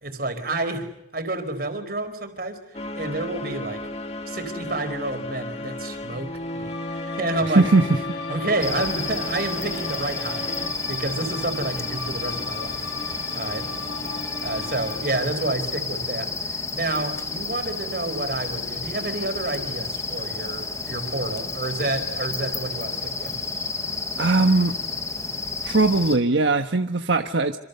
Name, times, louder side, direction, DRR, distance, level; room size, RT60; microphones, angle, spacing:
voice 1, 0.0-2.6 2.9-3.8 4.3-7.7 8.3-10.6 10.9-12.9 13.3-13.7 14.1-16.3 16.7-23.4, right 2 dB, 55° right, 8 dB, 4.5 m, -29 dB
sound 1, 2.7-10.7, left 1 dB, 35° left, 2.1 m, -34 dB
sound 2, 6.7-15.0, left 4 dB, 75° left, 6.7 m, -38 dB
voice 2, 7.5-8.0 24.2-24.8 25.6-27.6, right 3 dB, 85° right, 6 dB, 1.4 m, -19 dB
sound 3, 8.6-26.2, left 4 dB, 15° left, 1.5 m, -31 dB
27.5 x 27.0 x 6.9 m, 0.83 s
head